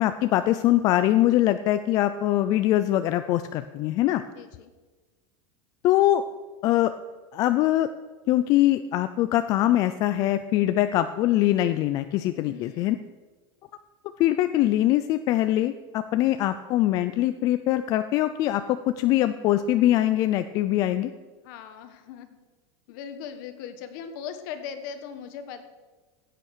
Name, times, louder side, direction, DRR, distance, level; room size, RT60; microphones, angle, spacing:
voice 1, 0.0-4.2 5.8-6.2 6.6-6.9 7.3-7.9 8.3-13.0 14.2-21.1, left 14 dB, 25° left, 10 dB, 0.3 m, -23 dB
voice 2, 4.3-4.7 12.3-13.0 21.4-22.4 22.9-25.6, left 7 dB, 45° left, 9 dB, 1.4 m, -39 dB
16.0 x 9.1 x 6.6 m, 1.3 s
supercardioid pair, 180°, 14 cm